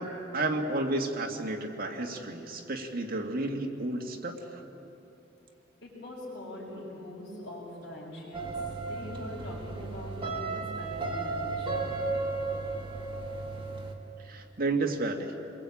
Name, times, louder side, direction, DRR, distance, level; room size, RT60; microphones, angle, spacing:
voice 1, 0.0-4.6 14.2-15.3, right 2 dB, 50° right, 2 dB, 2.2 m, -32 dB
voice 2, 5.8-12.0, left 1 dB, 60° left, -8 dB, 6.2 m, -43 dB
sound 1, 8.3-13.9, right 3 dB, 25° right, 2.5 m, -34 dB
29.5 x 21.5 x 8.7 m, 3.0 s
head